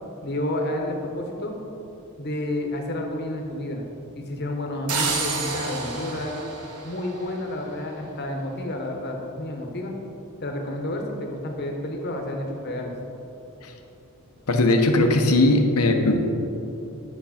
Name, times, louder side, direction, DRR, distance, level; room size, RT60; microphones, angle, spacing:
voice 1, 0.2-1.5 2.2-3.8 4.1-6.3 6.8-9.9 10.4-12.9, left 1 dB, 50° left, 2 dB, 1.2 m, -30 dB
sound 1, 4.9-7.7, right 4 dB, 90° right, 1.1 m, -30 dB
voice 2, 14.5-16.2, left 2 dB, 80° left, 4 dB, 1.0 m, -19 dB
10.5 x 6.7 x 4.3 m, 2.9 s
head